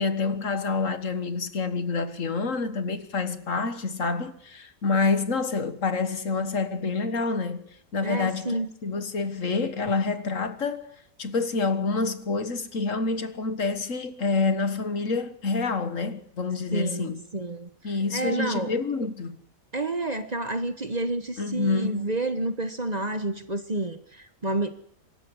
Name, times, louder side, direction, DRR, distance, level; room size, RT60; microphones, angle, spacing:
voice 1, 0.0-7.7 7.9-8.6 8.8-17.2 17.8-19.4 21.4-22.1, left 4 dB, 65° left, 1.9 m, -27 dB
voice 2, 8.0-8.7 16.7-17.7 18.1-18.7 19.7-24.7, right 2 dB, 30° right, 1.2 m, -29 dB
25.0 x 13.5 x 9.8 m
omnidirectional pair, 1.5 m